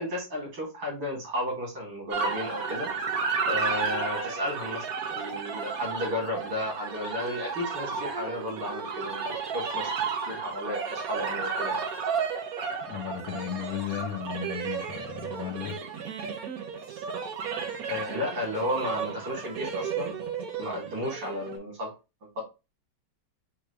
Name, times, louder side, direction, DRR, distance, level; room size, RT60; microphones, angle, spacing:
voice 1, 0.0-2.9 3.5-9.9 10.3-11.9 17.9-20.1 20.6-21.9 22.3-22.4, left 1 dB, 85° right, 3.3 m, -33 dB
sound 1, 2.1-21.6, right 5 dB, 60° right, 1.2 m, -33 dB
voice 2, 12.9-15.8, left 9 dB, 85° left, 1.5 m, -35 dB
6.0 x 2.4 x 3.2 m
omnidirectional pair, 2.1 m